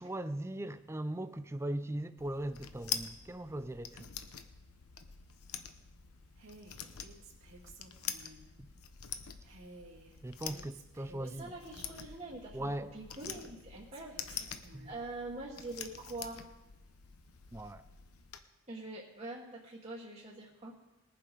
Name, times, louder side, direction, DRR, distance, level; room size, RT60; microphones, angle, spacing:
voice 1, 0.0-4.1 10.2-11.5 12.5-12.9 14.7-14.9 17.5-17.8, right 1 dB, 10° right, 0.4 m, -39 dB
sound 1, 2.2-18.4, left 8 dB, 80° left, 0.9 m, -46 dB
Female speech woman speaking, 6.4-8.5 9.4-12.3 13.1-15.0, right 2 dB, 70° right, 1.9 m, -55 dB
voice 2, 11.2-14.5 14.8-16.4 18.7-20.7, right 2 dB, 30° right, 1.3 m, -45 dB
20.5 x 7.5 x 5.1 m
head